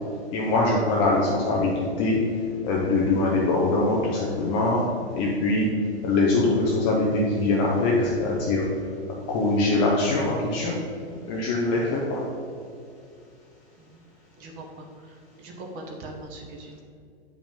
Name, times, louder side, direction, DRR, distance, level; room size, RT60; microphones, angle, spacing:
voice 1, 0.3-2.2 2.6-4.9 5.2-5.7 6.0-8.7 9.3-10.8 11.3-12.2, left 2 dB, 15° left, -3 dB, 0.4 m, -23 dB
voice 2, 14.4-16.8, right 2 dB, 25° right, 1 dB, 1.0 m, -41 dB
8.7 x 5.1 x 3.6 m, 2.4 s
hypercardioid pair, 150°, 33 cm